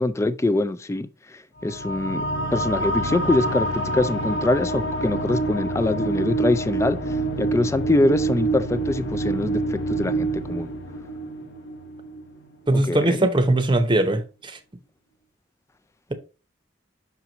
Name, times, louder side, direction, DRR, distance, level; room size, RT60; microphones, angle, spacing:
voice 1, 0.0-2.2 2.5-10.7 12.7-13.3, left 2 dB, 15° left, 0.3 m, -24 dB
sound 1, 1.6-12.5, right 2 dB, 80° left, 1.1 m, -27 dB
voice 2, 12.7-14.6, right 1 dB, 25° right, 0.8 m, -20 dB
5.9 x 4.6 x 3.9 m
head